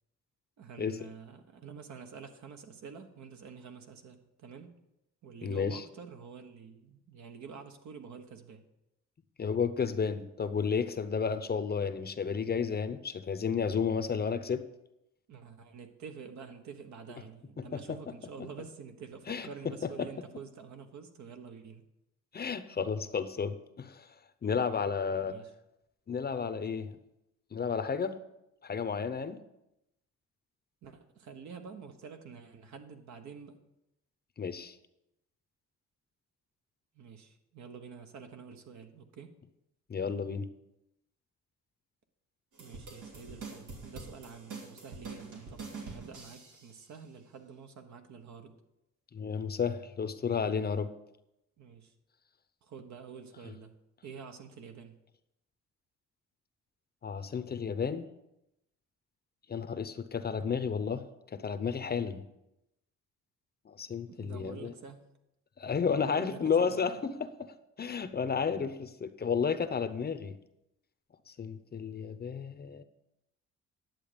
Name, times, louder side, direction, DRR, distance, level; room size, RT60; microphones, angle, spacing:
voice 1, 0.6-4.7 5.2-8.6 15.3-21.8 25.2-25.5 30.8-33.6 36.9-39.3 42.6-48.6 51.6-51.9 52.6-53.7 54.0-55.0 60.4-60.6 64.1-65.1 66.1-67.0, right 6 dB, 70° right, 6 dB, 1.3 m, -48 dB
voice 2, 5.4-5.8 9.4-14.6 17.6-17.7 18.4-18.5 19.3-19.5 20.0-20.1 22.3-24.1 24.4-25.3 26.1-27.0 27.5-28.1 28.6-29.4 34.4-34.8 39.9-40.5 49.1-50.9 57.0-58.1 59.5-61.0 61.3-62.2 63.7-64.7 65.6-67.3 67.8-70.4 71.3-72.8, left 6 dB, 30° left, 12 dB, 0.7 m, -32 dB
sound 1, 42.5-46.7, right 4 dB, 90° right, 2.8 m, -45 dB
10.5 x 7.6 x 5.1 m, 0.86 s
cardioid pair, 90°, 30 cm